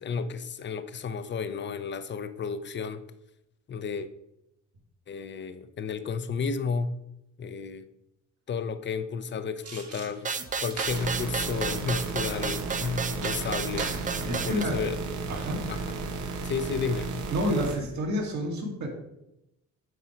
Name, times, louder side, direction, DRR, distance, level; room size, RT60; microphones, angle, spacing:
voice 1, 0.0-3.0 3.7-4.1 5.1-6.9 7.4-7.8 8.5-10.3 10.6-13.9 14.3-15.0 15.7-15.8 16.4-17.1, left 5 dB, 40° left, 12 dB, 0.6 m, -32 dB
sound 1, 9.6-14.6 15.0-15.1, right 4 dB, 50° right, 1.5 m, -43 dB
sound 2, 10.2-14.6, right 5 dB, 25° right, 0.6 m, -32 dB
sound 3, 10.9-17.8, right 3 dB, 90° right, 1.2 m, -34 dB
voice 2, 14.2-14.8 15.3-15.7 17.3-18.9, equal, 70° right, 0 dB, 2.0 m, -29 dB
7.9 x 4.7 x 4.4 m, 0.87 s
cardioid pair, 90°, 30 cm